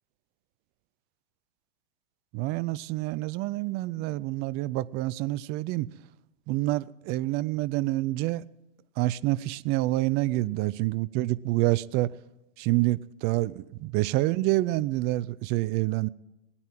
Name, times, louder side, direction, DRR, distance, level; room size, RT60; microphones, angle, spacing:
voice 1, 2.3-5.9 6.5-8.5 9.0-12.1 12.6-16.1, right 18 dB, 35° right, 0.5 m, -27 dB
19.0 x 9.8 x 7.6 m
hypercardioid pair, 110°, 30 cm